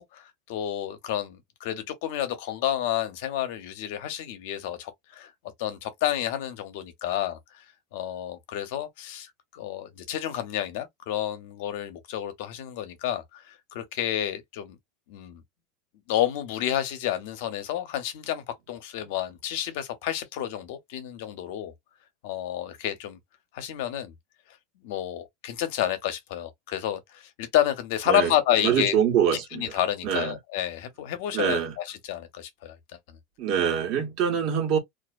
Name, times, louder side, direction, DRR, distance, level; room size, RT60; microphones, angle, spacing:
voice 1, 0.0-5.3 5.6-7.6 7.9-14.8 15.1-15.4 16.1-21.7 22.2-23.2 23.5-24.1 24.8-28.9 29.5-32.8, left 11 dB, 70° left, 0.7 m, -30 dB
voice 2, 28.6-29.6 30.0-30.4 31.3-31.7 33.4-34.8, right 8 dB, 50° right, 1.1 m, -24 dB
2.4 x 2.1 x 2.4 m
supercardioid pair, 140°, 0 cm